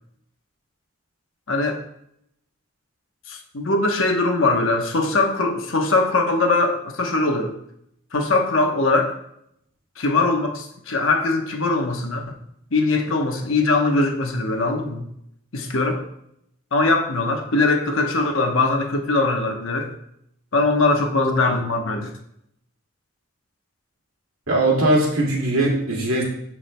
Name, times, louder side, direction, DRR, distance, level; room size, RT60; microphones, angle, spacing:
voice 1, 1.5-1.8 3.3-7.5 8.1-9.1 10.0-12.4 12.7-15.1 15.5-16.0 16.7-19.9 20.5-22.2, left 3 dB, 75° left, 3 dB, 1.0 m, -21 dB
voice 2, 24.5-26.2, right 1 dB, 85° right, -2 dB, 2.2 m, -20 dB
13.5 x 4.7 x 2.2 m, 0.75 s
head